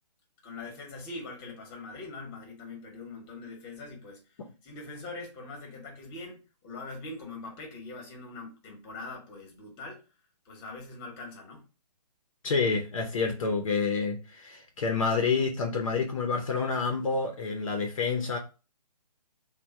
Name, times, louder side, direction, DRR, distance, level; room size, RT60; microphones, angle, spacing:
voice 1, 0.4-4.2 4.6-10.0 10.4-11.6, left 3 dB, 20° left, 1.0 m, -42 dB
voice 2, 12.4-18.4, left 4 dB, 50° left, 0.7 m, -28 dB
3.5 x 2.2 x 4.2 m
hypercardioid pair, 150°, 21 cm